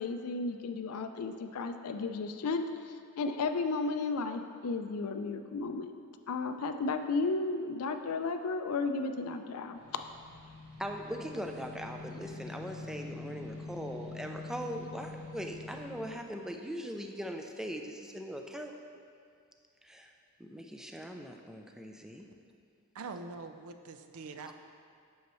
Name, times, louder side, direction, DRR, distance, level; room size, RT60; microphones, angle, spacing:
voice 1, 0.0-2.6 3.2-5.9 6.3-9.8, left 3 dB, 75° left, 8 dB, 0.4 m, -33 dB
sound 1, 9.7-16.1, left 3 dB, 30° right, 1.4 m, -45 dB
voice 2, 10.8-18.8 19.8-20.1 20.4-22.3 24.4-24.5, equal, 5° right, 3 dB, 0.4 m, -40 dB
voice 3, 22.9-24.5, right 4 dB, 70° right, 8 dB, 0.4 m, -43 dB
8.3 x 6.3 x 3.1 m, 2.3 s
head